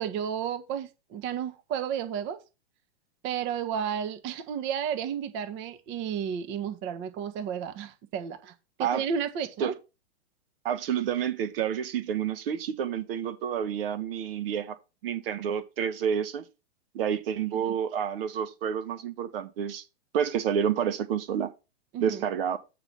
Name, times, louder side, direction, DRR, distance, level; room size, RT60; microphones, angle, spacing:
voice 1, 0.0-2.4 3.2-8.5 8.8-9.7 17.5-17.7 21.9-22.2, right 8 dB, 35° right, 1.2 m, -32 dB
voice 2, 10.6-14.8 15.0-16.4 16.9-19.8 20.1-21.5 22.0-22.6, right 8 dB, 60° right, 1.3 m, -29 dB
8.1 x 4.5 x 5.3 m
hypercardioid pair, 120°, 33 cm